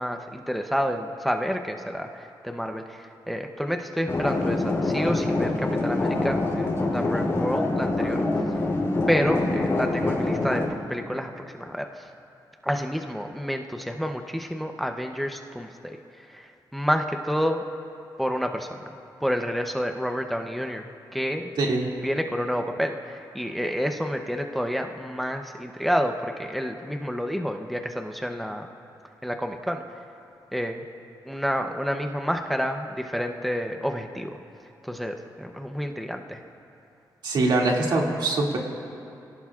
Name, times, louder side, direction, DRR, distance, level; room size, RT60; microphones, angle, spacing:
voice 1, 0.0-8.2 9.1-10.6 10.9-12.1 12.6-17.6 18.2-18.8 19.2-20.9 21.1-21.5 22.0-28.7 29.2-29.8 30.5-30.8 31.2-34.4 34.8-36.4, equal, ahead, 4 dB, 0.7 m, -29 dB
sound 1, 4.1-10.7, left 2 dB, 35° left, 3.1 m, -25 dB
voice 2, 21.6-21.9 37.2-38.6, right 2 dB, 75° right, -1 dB, 2.3 m, -23 dB
27.0 x 17.5 x 2.4 m, 2.6 s
wide cardioid pair, 135°, 8 cm